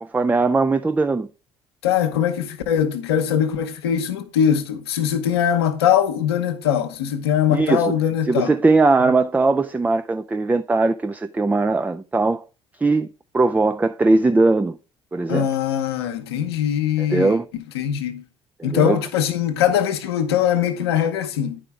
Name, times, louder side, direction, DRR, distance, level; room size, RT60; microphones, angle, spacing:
voice 1, 0.0-1.3 7.5-7.9 8.3-12.4 12.8-13.1 13.3-14.8 15.1-15.5 17.0-17.4 18.6-19.0, right 3 dB, 10° right, 0.3 m, -19 dB
voice 2, 1.8-8.6 9.0-9.1 15.3-17.4 17.7-18.2 18.6-21.6, left 9 dB, 90° left, 0.8 m, -21 dB
9.9 x 5.0 x 3.5 m
hypercardioid pair, 60°, 13 cm